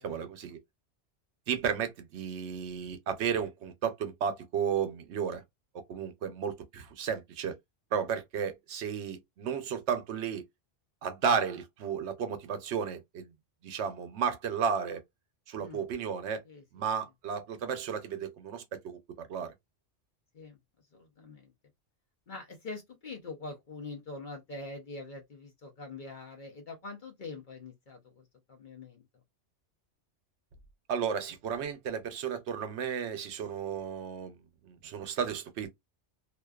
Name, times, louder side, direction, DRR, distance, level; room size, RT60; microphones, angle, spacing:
voice 1, 0.0-0.6 1.5-5.4 5.9-7.6 7.9-10.4 11.0-13.3 13.6-15.0 15.5-16.4 16.7-19.5 30.9-34.4 34.6-35.7, right 7 dB, 75° right, 0.9 m, -33 dB
voice 2, 20.9-21.5 22.3-29.1, left 3 dB, 50° left, 0.7 m, -44 dB
2.4 x 2.2 x 2.2 m
omnidirectional pair, 1.2 m